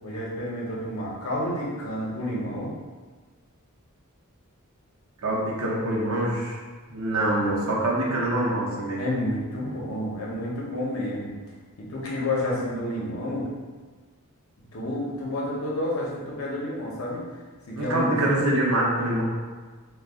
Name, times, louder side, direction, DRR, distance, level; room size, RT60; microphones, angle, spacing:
voice 1, 0.0-2.7 9.0-11.3 11.8-13.5 14.7-17.2 17.7-18.2, left 1 dB, 70° left, -5 dB, 0.8 m, -30 dB
voice 2, 5.2-6.6 6.9-9.0 17.8-19.2, right 1 dB, 70° right, -4 dB, 0.7 m, -25 dB
2.4 x 2.3 x 3.5 m, 1.4 s
head